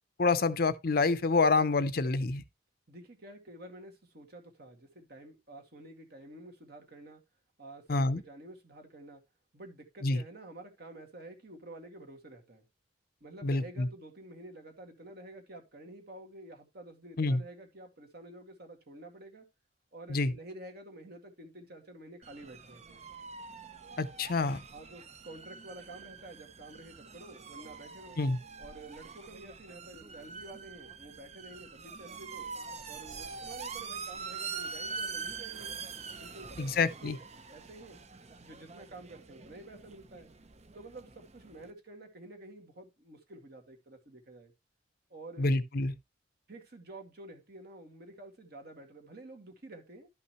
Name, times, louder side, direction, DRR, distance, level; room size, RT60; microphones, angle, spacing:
voice 1, 0.2-2.4 7.9-8.2 10.0-10.2 13.4-13.9 17.2-17.4 20.1-20.3 24.0-24.6 28.2-28.4 36.6-37.2 45.4-45.9, left 3 dB, 50° left, 0.6 m, -27 dB
voice 2, 2.9-7.2 7.6-9.2 9.5-12.6 13.2-19.4 19.9-23.0 24.7-28.2 28.6-32.5 32.9-38.0 38.4-40.3 40.7-44.5 45.1-45.5 46.5-50.1, right 2 dB, 55° right, 2.1 m, -50 dB
sound 1, 22.2-41.7, right 5 dB, 35° right, 0.6 m, -44 dB
12.0 x 5.6 x 3.0 m
head